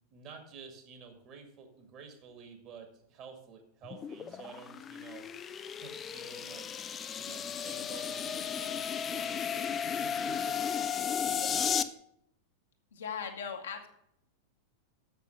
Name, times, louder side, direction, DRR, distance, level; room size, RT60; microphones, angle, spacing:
voice 1, 0.1-5.3 5.8-6.7 7.2-11.9, right 6 dB, 35° right, 5 dB, 2.0 m, -50 dB
sound 1, 3.8-11.8, left 7 dB, 25° left, 0.5 m, -34 dB
voice 2, 12.9-13.9, left 7 dB, 65° left, 3 dB, 1.5 m, -38 dB
7.3 x 6.9 x 6.8 m, 0.72 s
figure-of-eight pair, 90°, 0 cm